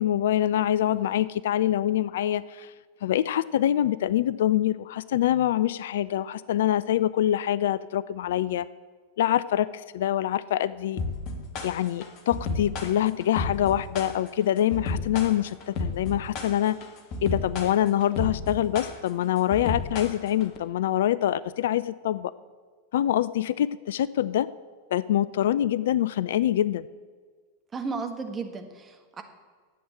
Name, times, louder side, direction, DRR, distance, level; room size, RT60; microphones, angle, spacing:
voice 1, 0.0-2.7 3.0-8.7 9.2-9.7 9.9-11.0 11.6-16.8 17.2-22.3 22.9-24.5 24.9-26.9, left 11 dB, 60° left, 17 dB, 0.3 m, -25 dB
sound 1, 11.0-20.6, left 3 dB, 40° left, 1.7 m, -32 dB
voice 2, 27.7-29.2, right 4 dB, 20° right, 5 dB, 1.5 m, -34 dB
11.0 x 7.9 x 8.5 m, 1.5 s
figure-of-eight pair, 90°, 0 cm